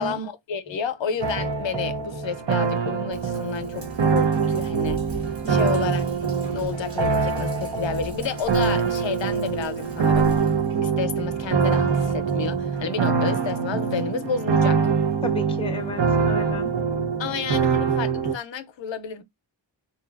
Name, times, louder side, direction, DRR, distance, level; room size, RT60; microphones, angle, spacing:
voice 1, 0.0-6.0 6.5-10.4 10.8-14.9 17.2-19.2, left 6 dB, 85° left, 0.5 m, -31 dB
sound 1, 1.2-18.3, right 5 dB, 75° right, 0.6 m, -24 dB
Sink (filling or washing), 3.1-12.8, equal, 30° right, 0.9 m, -42 dB
voice 2, 5.4-5.8 6.4-6.8 15.2-16.8, left 1 dB, 15° left, 0.4 m, -33 dB
2.7 x 2.2 x 2.3 m
wide cardioid pair, 65°, 44 cm